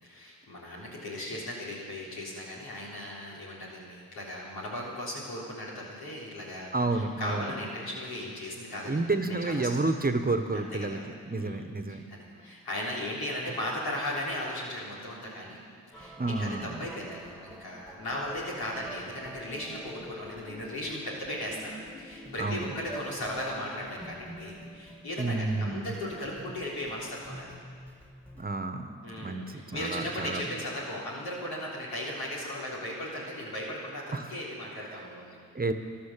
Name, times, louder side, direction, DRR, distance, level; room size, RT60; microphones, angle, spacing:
voice 1, 0.0-9.9 10.5-11.0 11.3-15.6 15.9-27.6 29.0-35.4, left 1 dB, 85° left, -5 dB, 3.6 m, -37 dB
voice 2, 6.7-7.5 8.8-12.0 16.2-16.8 22.4-22.7 25.2-25.9 28.4-28.9 29.2-30.5 34.1-34.3 35.5-35.7, right 3 dB, 25° right, 7 dB, 1.2 m, -30 dB
sound 1, 15.9-28.5, equal, 5° left, 2.0 m, -47 dB
13.0 x 11.5 x 7.5 m, 2.1 s
supercardioid pair, 40°, 36 cm